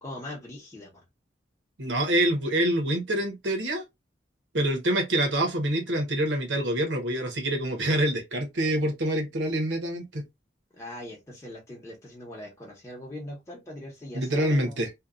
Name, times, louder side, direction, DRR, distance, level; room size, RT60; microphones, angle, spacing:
voice 1, 0.0-1.0 10.7-14.8, left 1 dB, 15° left, 0.8 m, -41 dB
voice 2, 1.8-3.8 4.5-10.3 14.1-14.9, right 1 dB, 75° right, 0.9 m, -26 dB
2.8 x 2.1 x 2.4 m
head